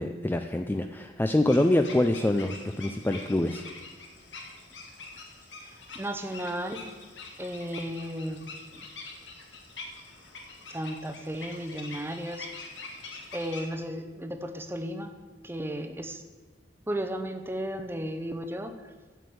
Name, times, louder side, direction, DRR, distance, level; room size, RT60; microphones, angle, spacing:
voice 1, 0.0-3.6, left 1 dB, 10° left, 6 dB, 0.3 m, -25 dB
sound 1, 1.5-13.6, left 3 dB, 80° left, 1.6 m, -45 dB
voice 2, 5.6-6.8 7.4-8.5 8.7-8.9 10.7-12.5 13.3-15.1 15.4-16.2 16.9-18.9, equal, 15° right, 7 dB, 0.7 m, -34 dB
7.6 x 7.0 x 7.9 m, 1.4 s
head